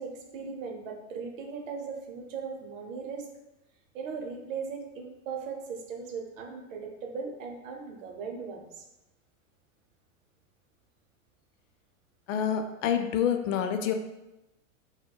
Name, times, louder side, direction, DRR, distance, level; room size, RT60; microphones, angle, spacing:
voice 1, 0.0-3.3 3.9-8.9, right 5 dB, 75° right, 2 dB, 0.7 m, -38 dB
voice 2, 12.3-13.9, left 8 dB, 75° left, 7 dB, 0.5 m, -27 dB
4.2 x 2.1 x 2.2 m, 0.96 s
supercardioid pair, 145°, 39 cm